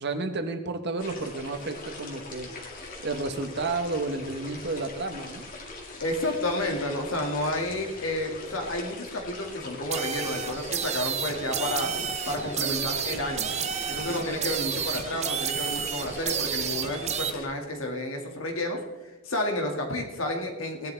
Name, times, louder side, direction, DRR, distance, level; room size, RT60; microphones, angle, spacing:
voice 1, 0.0-5.5, right 3 dB, 55° right, 7 dB, 1.1 m, -32 dB
sound 1, 1.0-17.5, left 2 dB, 40° left, 2.1 m, -41 dB
voice 2, 6.0-11.9 12.3-13.6 13.9-20.9, left 1 dB, 70° left, 2 dB, 2.0 m, -31 dB
sound 2, 9.9-17.3, right 8 dB, 35° right, 0.7 m, -31 dB
17.5 x 11.0 x 3.4 m, 1.2 s
head